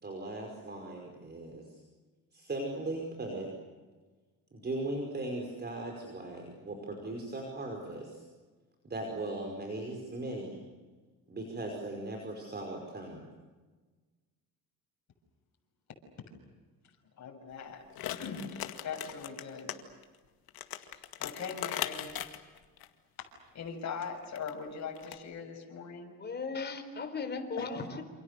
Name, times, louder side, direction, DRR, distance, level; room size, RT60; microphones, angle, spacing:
voice 1, 0.0-1.8 2.3-3.5 4.5-8.2 8.8-10.6 11.3-13.2, right 2 dB, 25° right, 2 dB, 5.3 m, -38 dB
voice 2, 17.1-17.8 18.1-18.5 18.8-19.7 20.8-22.2 23.2-23.3 23.5-26.1 27.6-27.7, left 6 dB, 45° left, 1 dB, 6.8 m, -41 dB
sound 1, 17.9-19.8 20.0-20.1 20.5-22.9 24.2-24.5 24.9-25.2, left 12 dB, 70° left, 2.2 m, -39 dB
voice 3, 26.2-28.0, left 4 dB, 25° left, 7 dB, 4.2 m, -37 dB
28.5 x 28.0 x 6.8 m, 1.3 s
cardioid pair, 125°, 37 cm